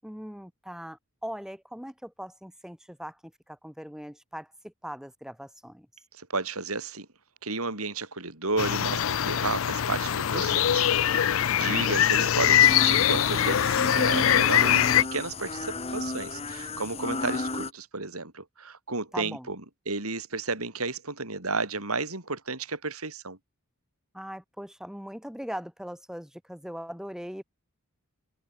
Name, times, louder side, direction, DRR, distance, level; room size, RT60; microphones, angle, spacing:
voice 1, 0.0-5.9 11.4-12.1 19.1-19.5 24.1-27.4, equal, 5° right, 5.8 m, -40 dB
voice 2, 6.2-7.1 7.4-19.6 19.9-23.4, right 3 dB, 85° right, 6.8 m, -32 dB
sound 1, 8.6-15.0, left 10 dB, 65° left, 0.5 m, -23 dB
sound 2, 12.6-17.7, left 3 dB, 30° left, 1.4 m, -33 dB
head